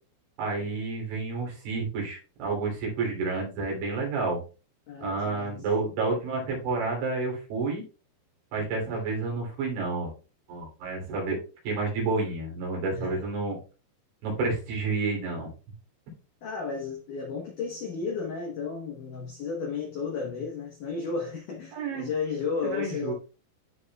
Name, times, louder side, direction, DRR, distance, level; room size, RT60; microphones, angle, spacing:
voice 1, 0.4-4.4 5.0-7.8 8.5-10.1 10.5-11.4 11.7-13.6 14.2-15.5 21.7-22.1 22.6-23.1, right 3 dB, 70° right, 5.4 m, -30 dB
voice 2, 4.9-5.6 8.6-8.8 12.9-13.2 16.4-23.1, left 5 dB, 80° left, 1.8 m, -33 dB
14.0 x 5.0 x 2.3 m
omnidirectional pair, 5.7 m